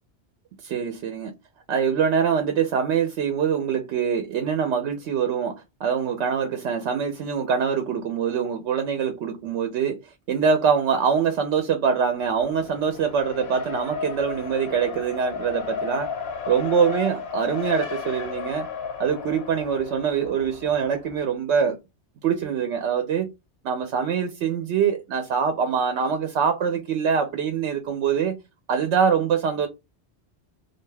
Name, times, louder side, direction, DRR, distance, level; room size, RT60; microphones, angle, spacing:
voice 1, 0.6-1.3 1.7-16.1 16.5-18.7 19.0-21.8 22.2-23.3 23.6-28.3 28.7-29.7, right 7 dB, 80° right, 0.9 m, -24 dB
Race car auto racing, 12.1-21.2, left 6 dB, 70° left, 0.9 m, -34 dB
2.4 x 2.2 x 3.1 m
omnidirectional pair, 1.1 m